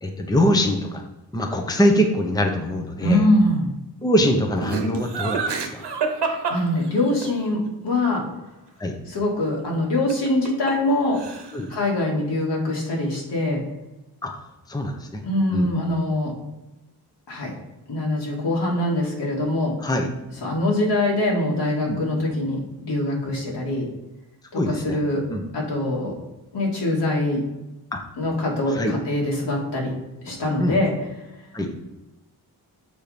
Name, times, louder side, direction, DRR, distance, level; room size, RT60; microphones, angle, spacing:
voice 1, 0.0-1.0 1.3-3.2 4.0-5.9 8.8-8.9 11.5-11.7 14.2-14.4 14.7-15.2 15.5-15.7 19.8-20.1 21.8-22.0 24.5-25.0 25.3-25.5 27.9-28.0 28.7-28.9 30.6-30.8 31.5-31.7, equal, 10° left, 3 dB, 0.7 m, -23 dB
voice 2, 3.0-3.7 6.2-8.2 9.1-11.2 11.7-13.6 15.2-16.3 17.3-17.5 17.9-19.7 20.4-23.8 24.5-25.2 25.5-26.1 26.5-27.4 28.2-29.9 30.2-30.9, left 1 dB, 90° left, -3 dB, 2.4 m, -23 dB
Laughter, 4.6-7.3 10.1-10.9 11.2-11.7, right 4 dB, 85° right, 1.1 m, -27 dB
6.8 x 4.5 x 5.1 m, 1.0 s
wide cardioid pair, 135°, 40 cm